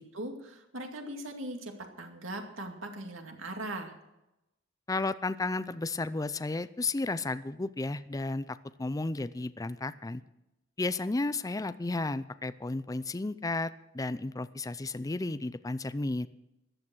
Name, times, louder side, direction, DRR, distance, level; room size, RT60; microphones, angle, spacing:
voice 1, 0.1-3.9, right 1 dB, 90° right, 4 dB, 2.3 m, -40 dB
voice 2, 4.9-10.2 10.8-16.3, left 2 dB, 20° left, 13 dB, 0.4 m, -33 dB
14.5 x 11.0 x 6.2 m, 0.91 s
head